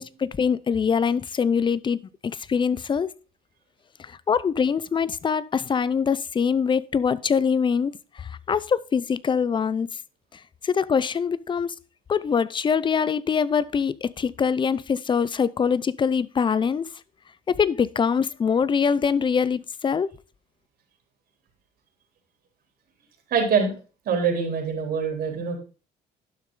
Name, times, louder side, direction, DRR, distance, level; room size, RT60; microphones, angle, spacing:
voice 1, 0.0-3.1 4.0-9.9 10.3-11.7 12.1-16.9 17.5-20.1, left 6 dB, 30° left, 0.6 m, -24 dB
voice 2, 23.3-23.7 24.1-25.6, right 6 dB, 65° right, 3.6 m, -24 dB
11.5 x 6.2 x 3.8 m
cardioid pair, 110°, 17 cm